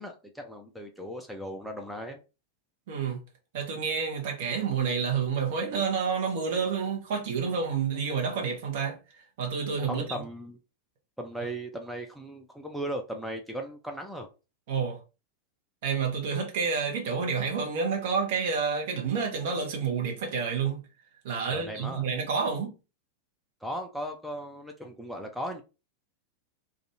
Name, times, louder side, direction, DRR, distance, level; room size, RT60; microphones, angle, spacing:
voice 1, 0.0-2.2 9.9-10.6 11.2-14.3 21.5-22.1 23.6-25.6, equal, ahead, 0.4 m, -37 dB
voice 2, 2.9-3.2 3.5-9.0 9.4-10.2 14.7-15.0 15.8-20.8 21.2-22.8, right 6 dB, 50° right, 0.9 m, -29 dB
2.5 x 2.3 x 2.7 m
figure-of-eight pair, 90°, 0 cm